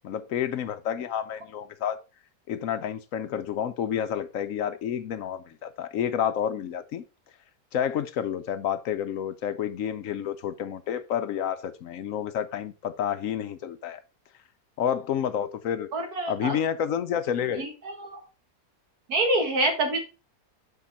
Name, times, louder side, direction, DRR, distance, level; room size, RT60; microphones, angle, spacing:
voice 1, 0.0-2.0 2.5-7.0 7.7-14.0 14.8-15.9 16.3-17.7, left 9 dB, 70° left, 0.9 m, -29 dB
voice 2, 15.9-16.6 17.6-18.2 19.1-20.0, right 1 dB, 75° right, 2.3 m, -26 dB
6.0 x 5.8 x 4.1 m
omnidirectional pair, 1.6 m